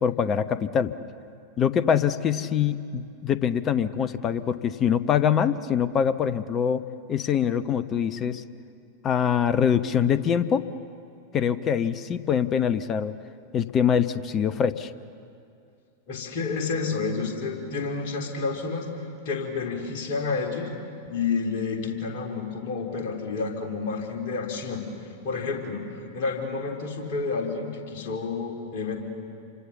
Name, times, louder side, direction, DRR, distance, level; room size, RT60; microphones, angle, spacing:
voice 1, 0.0-0.9 1.6-6.8 7.1-8.4 9.0-10.6 11.3-13.1 13.5-14.9, left 8 dB, 30° left, 14 dB, 0.9 m, -24 dB
voice 2, 16.1-18.9 19.3-20.7 21.1-24.8 25.2-25.8 26.1-29.0, left 4 dB, 45° left, 1 dB, 3.8 m, -29 dB
28.5 x 25.0 x 7.2 m, 2.4 s
figure-of-eight pair, 90°, 0 cm